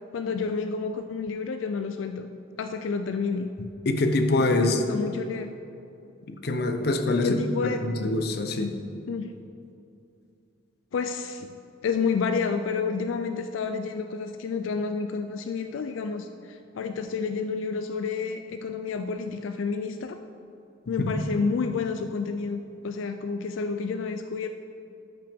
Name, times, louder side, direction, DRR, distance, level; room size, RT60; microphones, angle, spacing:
voice 1, 0.1-2.3 2.6-3.5 4.6-5.5 7.2-8.1 9.1-9.3 10.9-11.6 11.8-20.2 20.9-22.6 22.8-24.5, left 5 dB, 85° left, 8 dB, 0.4 m, -30 dB
voice 2, 3.9-4.8 6.3-7.4 7.8-8.7 21.0-21.2, left 2 dB, 55° left, 6 dB, 0.7 m, -24 dB
13.0 x 5.9 x 3.5 m, 2.6 s
head